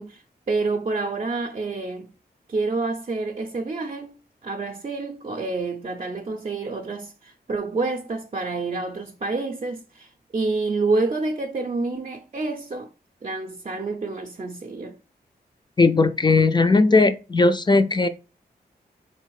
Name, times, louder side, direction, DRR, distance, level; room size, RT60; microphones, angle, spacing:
voice 1, 0.0-2.1 2.5-4.1 4.4-12.9 13.2-15.0, right 3 dB, 35° right, 0.5 m, -28 dB
voice 2, 15.8-18.1, left 3 dB, 25° left, 0.3 m, -18 dB
3.4 x 3.3 x 4.7 m
wide cardioid pair, 105°, 17 cm